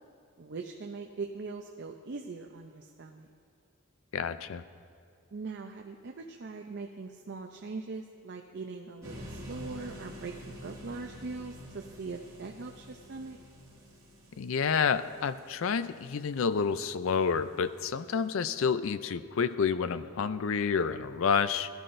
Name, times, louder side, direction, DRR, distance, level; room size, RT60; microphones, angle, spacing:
voice 1, 0.4-3.3 5.3-13.4, right 4 dB, 50° right, 4 dB, 0.5 m, -41 dB
voice 2, 4.1-4.6 14.4-21.7, left 6 dB, 65° left, 14 dB, 0.4 m, -29 dB
sound 1, 9.0-17.1, equal, 15° right, 1.9 m, -48 dB
17.0 x 12.0 x 2.6 m, 2.5 s
head